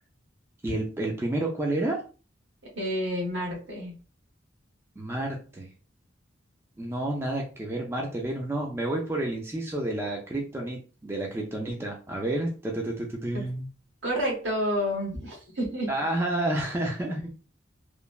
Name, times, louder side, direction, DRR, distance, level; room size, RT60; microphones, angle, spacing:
voice 1, 0.6-2.0 5.0-5.7 6.8-13.7 15.9-17.3, right 1 dB, 15° right, -1 dB, 0.3 m, -30 dB
voice 2, 2.7-3.9 13.3-13.4 14.0-15.9, equal, 70° right, -2 dB, 1.2 m, -29 dB
3.1 x 2.1 x 2.3 m, 0.35 s
head